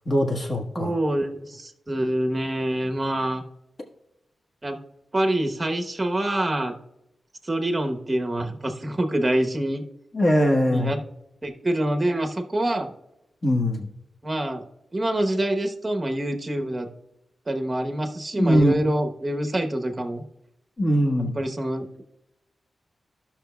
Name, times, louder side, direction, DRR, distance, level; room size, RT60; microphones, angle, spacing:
voice 1, 0.0-0.9 10.1-10.9 13.4-13.9 18.4-18.7 20.8-21.4, equal, 40° left, 0 dB, 1.4 m, -21 dB
voice 2, 0.8-3.4 4.6-4.8 5.1-6.8 7.4-9.8 10.7-11.0 11.4-12.9 14.2-14.6 14.9-16.9 17.5-20.2 21.4-22.0, right 1 dB, 25° right, 4 dB, 0.9 m, -26 dB
15.0 x 6.0 x 2.3 m, 0.89 s
wide cardioid pair, 110°, 0 cm